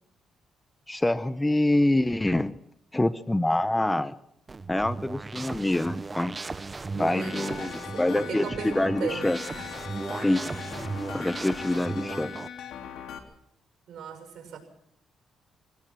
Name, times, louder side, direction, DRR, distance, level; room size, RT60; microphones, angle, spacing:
voice 1, 0.9-2.6 2.9-4.1 4.7-6.4 7.0-9.4 10.2-10.4 11.1-12.3, left 1 dB, 10° left, 14 dB, 0.8 m, -25 dB
sound 1, 4.5-12.5, right 3 dB, 25° right, 0.8 m, -36 dB
voice 2, 6.9-9.7 11.6-11.7 13.9-14.6, right 7 dB, 70° right, 7 dB, 6.7 m, -37 dB
sound 2, 7.2-13.2, left 8 dB, 80° left, 3.2 m, -40 dB
25.5 x 17.0 x 6.0 m, 0.73 s
cardioid pair, 90°, 0 cm